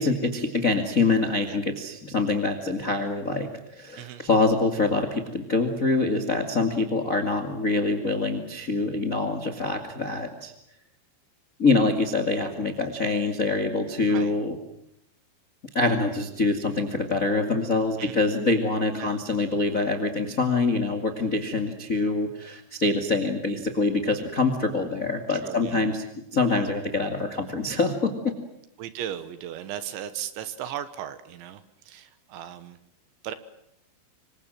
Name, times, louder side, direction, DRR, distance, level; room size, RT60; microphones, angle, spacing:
voice 1, 0.0-10.5 11.6-14.6 15.7-26.0 26.3-28.1, left 3 dB, 50° left, 6 dB, 0.9 m, -25 dB
voice 2, 25.4-25.9 28.8-32.8 33.2-33.3, right 10 dB, 70° right, 12 dB, 3.4 m, -36 dB
26.5 x 24.5 x 7.6 m, 0.78 s
omnidirectional pair, 5.8 m